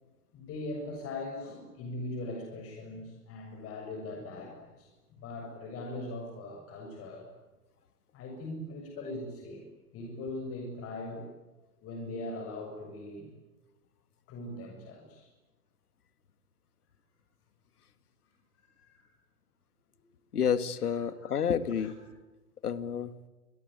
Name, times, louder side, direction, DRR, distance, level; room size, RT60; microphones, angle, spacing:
voice 1, 0.3-7.3 8.1-9.6 9.9-11.3 11.8-13.3 14.3-15.3 18.6-19.1 20.0-20.1 20.8-20.9 21.2-21.3 21.8-21.9, left 2 dB, 30° left, 2 dB, 7.3 m, -40 dB
voice 2, 20.3-21.9 22.6-23.1, left 7 dB, 75° left, 14 dB, 2.1 m, -29 dB
28.0 x 22.5 x 9.4 m, 1.1 s
figure-of-eight pair, 110°, 46 cm